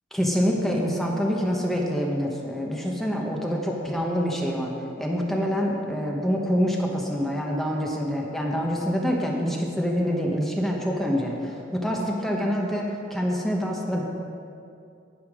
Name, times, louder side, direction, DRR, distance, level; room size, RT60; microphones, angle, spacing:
voice 1, 0.1-14.0, equal, ahead, -1 dB, 0.9 m, -26 dB
9.8 x 9.5 x 4.8 m, 2.5 s
head